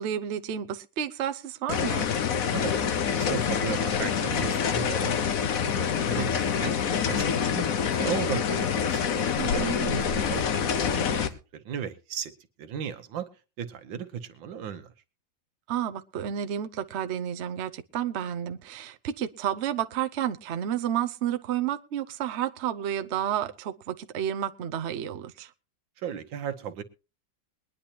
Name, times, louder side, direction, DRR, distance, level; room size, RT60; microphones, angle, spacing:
voice 1, 0.0-2.1 9.4-10.0 15.7-25.5, right 10 dB, 55° right, 0.7 m, -31 dB
sound 1, 1.7-11.3, left 7 dB, 55° left, 1.2 m, -26 dB
voice 2, 2.5-6.7 7.1-9.0 9.5-9.8 10.1-12.3 12.6-13.3 13.6-14.9 26.0-26.8, right 8 dB, 85° right, 1.8 m, -36 dB
22.0 x 10.0 x 2.9 m
omnidirectional pair, 2.0 m